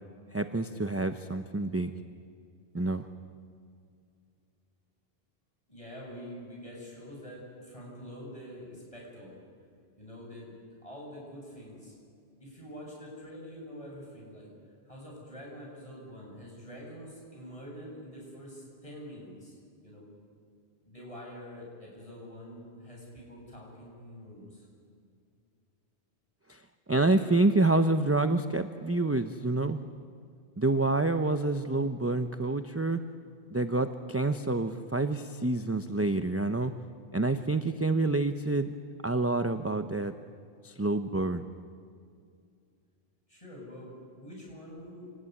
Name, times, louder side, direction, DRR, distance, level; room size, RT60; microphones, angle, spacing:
voice 1, 0.3-1.9 2.7-3.1 26.5-26.6 26.9-29.8 30.6-33.0 33.5-36.7 37.1-38.7 39.0-40.1 40.6-41.5, right 2 dB, 15° right, 9 dB, 0.6 m, -27 dB
voice 2, 5.7-9.3 10.0-10.5 10.8-11.9 12.4-14.5 14.9-19.6 19.8-20.0 20.8-24.7 43.3-45.1, equal, 30° left, -3 dB, 8.2 m, -46 dB
27.0 x 19.0 x 9.7 m, 2.3 s
omnidirectional pair, 1.1 m